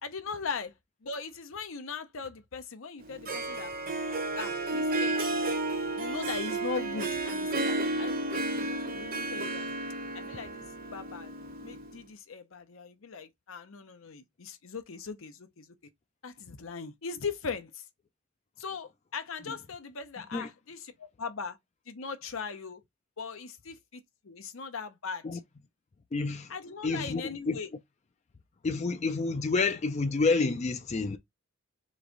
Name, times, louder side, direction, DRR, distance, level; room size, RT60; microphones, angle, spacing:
voice 1, 0.0-0.7 1.0-3.7 4.4-5.2 6.0-9.7 10.1-10.6 10.9-11.3 11.6-15.7 16.2-17.8 18.6-21.6 21.9-22.8 23.2-25.4 26.5-27.7, left 5 dB, 70° left, 0.7 m, -39 dB
Harp, 3.0-12.0, right 2 dB, 45° right, 0.8 m, -32 dB
voice 2, 26.1-26.5 26.8-27.6 28.6-31.2, left 4 dB, 30° left, 0.4 m, -29 dB
3.4 x 3.1 x 3.8 m
head